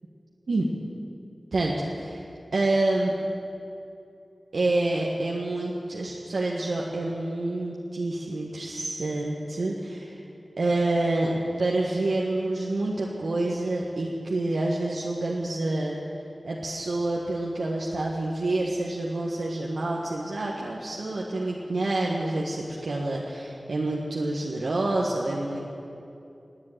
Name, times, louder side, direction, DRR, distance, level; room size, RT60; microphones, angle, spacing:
voice 1, 1.5-2.2 2.5-3.1 4.5-10.2 10.6-16.0 16.4-25.6, right 2 dB, 80° right, -3 dB, 1.5 m, -27 dB
20.0 x 7.6 x 9.2 m, 2.7 s
wide cardioid pair, 70°, 0 cm